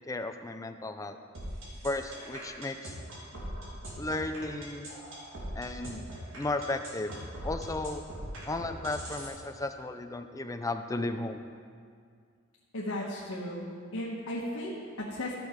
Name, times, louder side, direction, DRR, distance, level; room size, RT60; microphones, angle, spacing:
voice 1, 0.1-1.2 1.8-2.9 4.0-4.9 5.6-6.0 6.3-7.1 7.4-8.0 8.5-11.4, left 2 dB, 15° left, 7 dB, 0.5 m, -34 dB
sound 1, 1.3-9.3, right 1 dB, 65° right, 2.8 m, -41 dB
voice 2, 12.7-15.3, left 1 dB, 85° left, -5 dB, 1.3 m, -36 dB
13.5 x 6.4 x 5.1 m, 2.2 s
head